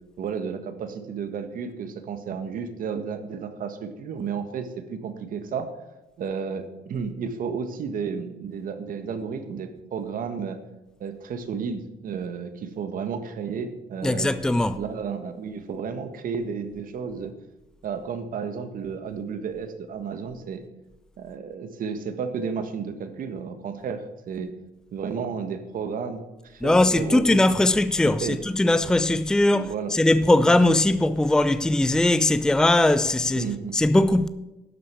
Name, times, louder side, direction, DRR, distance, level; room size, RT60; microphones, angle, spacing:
voice 1, 0.2-5.7 6.2-10.6 11.0-14.3 14.8-17.3 17.8-20.6 21.2-24.5 24.9-27.4 28.0-28.4 29.5-29.9 33.4-33.8, right 6 dB, 55° right, 1.6 m, -32 dB
voice 2, 14.0-14.8 26.6-33.5 33.7-34.3, left 2 dB, 5° left, 0.5 m, -20 dB
12.0 x 7.8 x 6.9 m
cardioid pair, 110°, 17 cm